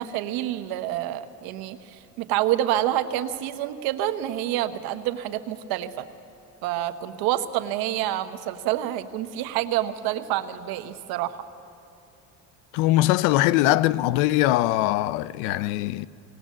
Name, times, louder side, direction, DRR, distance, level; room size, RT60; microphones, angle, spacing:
voice 1, 0.0-6.1 6.6-11.4, right 13 dB, 70° right, 1.0 m, -28 dB
voice 2, 12.7-16.1, left 16 dB, 90° left, 0.5 m, -21 dB
19.5 x 18.5 x 7.4 m
cardioid pair, 135°, 37 cm